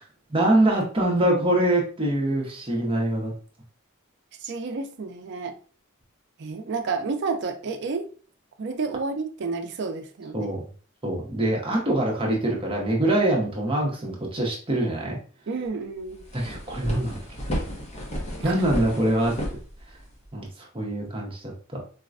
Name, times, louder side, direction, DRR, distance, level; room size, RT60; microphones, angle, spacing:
voice 1, 0.3-3.3 10.3-10.6 11.0-15.2 16.3-17.2 18.4-19.4 20.3-21.8, right 1 dB, 25° right, 0.7 m, -24 dB
voice 2, 4.4-5.6 6.4-8.1 8.6-10.5 15.5-16.3 18.4-18.6, right 4 dB, 60° right, 0.5 m, -30 dB
sound 1, 15.7-15.8 16.1-20.3, equal, 30° left, 0.7 m, -32 dB
4.0 x 2.2 x 2.4 m
head